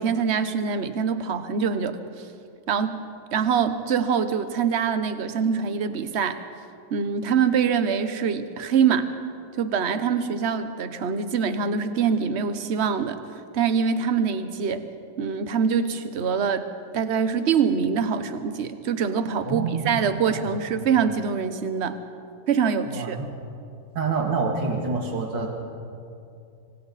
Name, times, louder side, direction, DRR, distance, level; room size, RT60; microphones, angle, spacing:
voice 1, 0.0-2.0 2.7-3.0 3.3-6.4 6.9-9.1 9.6-13.2 13.5-14.9 15.2-16.7 16.9-22.0 22.5-23.2, right 6 dB, 45° right, 10 dB, 1.1 m, -24 dB
voice 2, 19.4-20.0 20.3-20.6 22.9-23.3 23.9-25.5, right 4 dB, 85° right, 1 dB, 2.7 m, -27 dB
25.5 x 25.0 x 4.1 m, 2.5 s
omnidirectional pair, 1.9 m